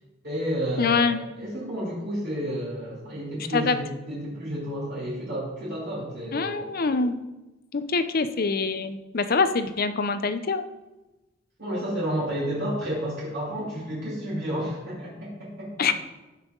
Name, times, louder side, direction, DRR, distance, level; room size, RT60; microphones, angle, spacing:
voice 1, 0.2-6.7 11.6-15.9, equal, 55° right, -7 dB, 3.0 m, -31 dB
voice 2, 0.8-1.2 3.5-3.8 6.3-7.2 7.7-10.7 15.8-15.9, left 4 dB, 45° left, 10 dB, 0.6 m, -24 dB
15.5 x 5.7 x 3.9 m, 1.1 s
head